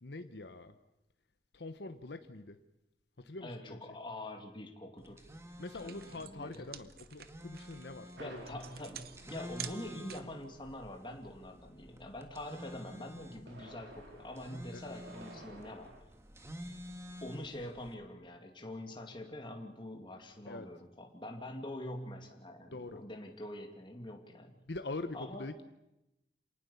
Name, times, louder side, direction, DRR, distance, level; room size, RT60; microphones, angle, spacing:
voice 1, 0.0-0.8 1.5-2.6 3.2-3.8 5.6-8.4 14.7-14.9 20.5-20.7 22.7-23.0 24.7-25.6, left 2 dB, 75° left, 8 dB, 1.0 m, -44 dB
voice 2, 3.4-5.2 5.8-6.7 8.2-16.0 17.2-24.6 25.1-25.5, left 1 dB, 30° left, 3 dB, 2.4 m, -45 dB
sound 1, 5.0-17.9, equal, 15° right, 1.7 m, -50 dB
sound 2, 5.2-5.4 5.6-10.4, right 10 dB, 60° right, 1.0 m, -48 dB
sound 3, 8.2-10.3 13.2-16.0, right 1 dB, 85° right, 4.6 m, -54 dB
27.5 x 19.0 x 7.0 m, 0.90 s
head